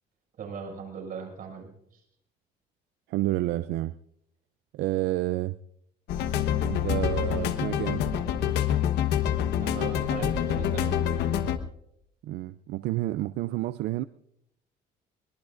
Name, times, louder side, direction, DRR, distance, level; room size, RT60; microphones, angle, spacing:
voice 1, 0.4-2.0 9.6-11.0, right 6 dB, 55° right, 1 dB, 6.2 m, -38 dB
voice 2, 3.1-4.0 4.7-5.5 6.6-8.0 12.2-14.0, right 16 dB, 80° right, 14 dB, 0.5 m, -29 dB
sound 1, 6.1-11.6, left 9 dB, 80° left, 1.2 m, -26 dB
23.0 x 21.0 x 2.5 m, 0.75 s
cardioid pair, 110°, 17 cm